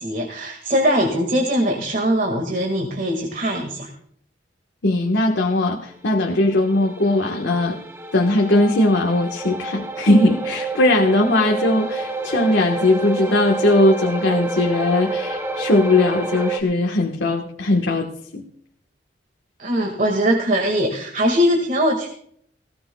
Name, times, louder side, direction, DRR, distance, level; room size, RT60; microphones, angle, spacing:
voice 1, 0.0-3.9 19.6-22.1, equal, 50° right, 2 dB, 2.0 m, -21 dB
voice 2, 4.8-7.8 8.1-18.4, left 2 dB, 90° left, 1 dB, 1.4 m, -19 dB
sound 1, 6.2-16.6, right 3 dB, 15° right, 1.1 m, -28 dB
18.5 x 17.5 x 2.3 m, 0.64 s
head